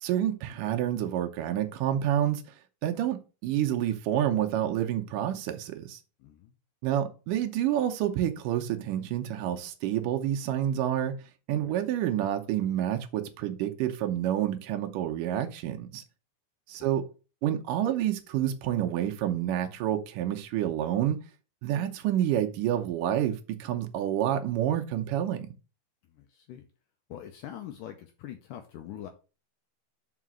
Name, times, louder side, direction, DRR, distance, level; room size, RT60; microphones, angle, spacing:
voice 1, 0.0-2.4 2.8-6.0 6.8-11.2 11.5-16.0 16.7-17.0 17.4-21.2 21.6-25.5, right 11 dB, 80° right, 1.9 m, -28 dB
voice 2, 6.2-6.5 11.6-11.8 16.7-16.9 26.1-26.7 27.1-29.1, left 11 dB, 85° left, 1.8 m, -43 dB
5.7 x 4.9 x 6.1 m
omnidirectional pair, 4.6 m